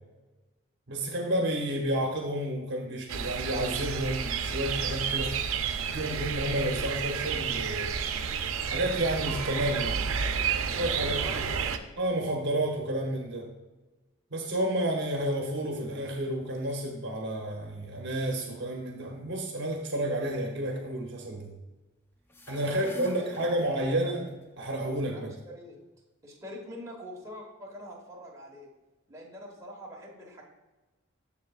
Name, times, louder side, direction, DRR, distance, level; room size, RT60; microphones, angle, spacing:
voice 1, 0.9-5.5 5.8-7.9 8.6-10.0 10.8-11.4 12.0-13.5 14.3-21.5 22.5-24.2 24.6-25.3, right 1 dB, 55° right, 1 dB, 1.0 m, -30 dB
sound 1, 3.1-11.8, right 6 dB, 85° right, 0.5 m, -31 dB
voice 2, 11.0-11.9 22.6-24.1 25.1-25.8 26.2-28.7 29.1-30.4, equal, 15° right, -3 dB, 1.4 m, -45 dB
sound 2, 22.2-24.3, equal, 10° left, 0.4 m, -46 dB
7.4 x 6.9 x 2.5 m, 1.2 s
head